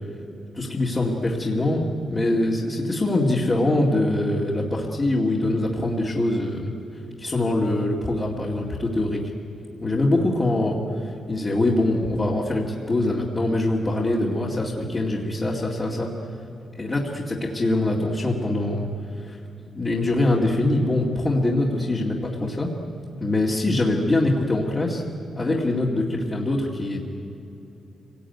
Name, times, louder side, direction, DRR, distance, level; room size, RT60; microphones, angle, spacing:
voice 1, 0.5-6.7 7.2-9.2 9.8-16.1 16.7-18.9 19.2-19.4 19.7-22.8 23.2-25.0 25.4-27.0, left 2 dB, 20° left, -4 dB, 2.3 m, -23 dB
27.0 x 19.0 x 9.5 m, 2.8 s
wide cardioid pair, 170°, 0 cm